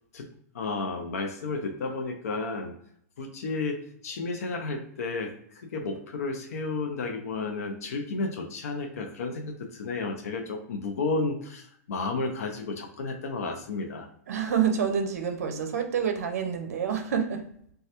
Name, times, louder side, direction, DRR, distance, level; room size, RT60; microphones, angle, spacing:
voice 1, 0.5-2.7 3.2-14.1, left 3 dB, 70° left, 3 dB, 0.5 m, -32 dB
voice 2, 14.3-17.4, right 7 dB, 65° right, 5 dB, 0.5 m, -27 dB
3.1 x 2.3 x 2.8 m, 0.68 s
hypercardioid pair, 175°, 9 cm